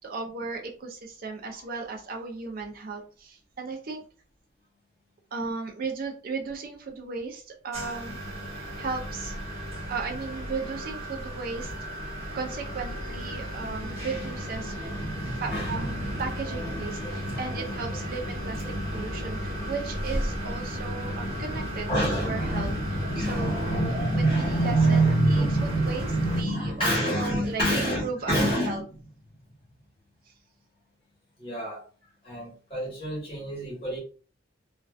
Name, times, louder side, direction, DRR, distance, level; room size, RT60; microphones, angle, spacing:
voice 1, 0.0-4.0 5.3-8.2 8.5-9.3 9.9-11.7 12.3-14.8 15.2-18.6 18.9-25.0 25.3-28.8, right 4 dB, 50° right, 0.4 m, -36 dB
sound 1, 7.7-26.4, equal, 30° right, 1.0 m, -34 dB
voice 2, 14.7-16.2 16.6-17.9 18.8-19.0 19.6-19.7 21.3-21.5 21.9-28.8 31.4-31.8 32.2-34.0, right 1 dB, 30° left, 1.1 m, -27 dB
2.4 x 2.2 x 2.3 m
head